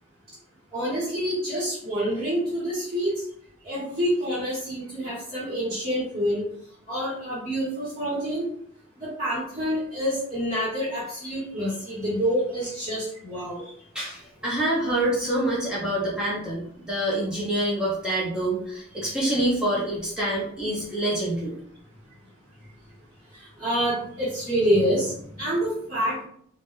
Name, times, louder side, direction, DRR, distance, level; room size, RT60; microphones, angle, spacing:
voice 1, 0.7-3.2 3.6-6.4 6.9-8.5 9.0-13.6 23.3-26.2, equal, 25° right, -10 dB, 0.9 m, -27 dB
voice 2, 13.9-21.5, right 1 dB, 5° right, -7 dB, 0.6 m, -26 dB
2.2 x 2.1 x 3.0 m, 0.65 s
head